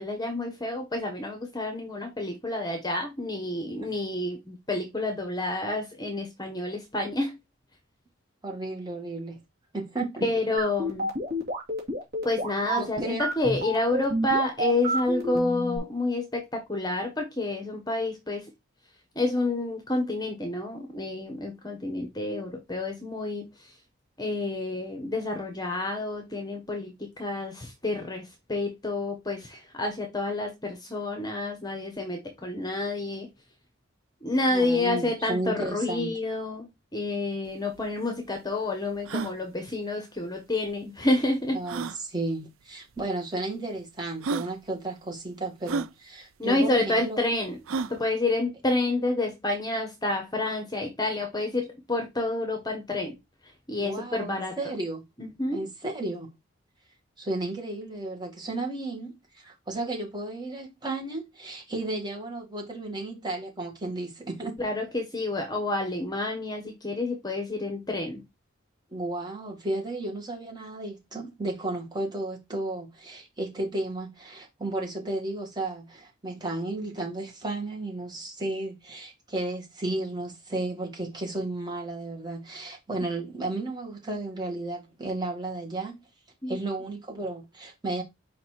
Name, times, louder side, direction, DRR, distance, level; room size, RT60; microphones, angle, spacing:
voice 1, 0.0-7.3 10.2-11.1 12.2-18.4 19.1-23.5 24.2-33.3 34.2-36.7 36.9-41.6 46.4-47.6 47.9-53.2 53.7-54.6 55.2-55.6 64.6-68.2 86.4-86.6, left 2 dB, 20° left, 1.2 m, -29 dB
voice 2, 8.4-9.4 9.7-10.2 12.8-13.2 34.5-36.1 41.5-47.2 53.8-55.0 55.5-56.3 57.2-64.6 68.9-86.0 86.5-88.0, right 2 dB, 20° right, 2.1 m, -33 dB
sound 1, 10.6-15.8, equal, 50° right, 2.5 m, -29 dB
sound 2, 37.5-37.6 37.7-37.8 38.4-38.5 39.0-39.3 40.7-40.8 41.6-42.0 43.0-43.1 43.8-43.9 44.2-44.5 45.6-45.9 47.7-48.0, right 4 dB, 70° right, 0.4 m, -31 dB
5.2 x 4.3 x 4.5 m
head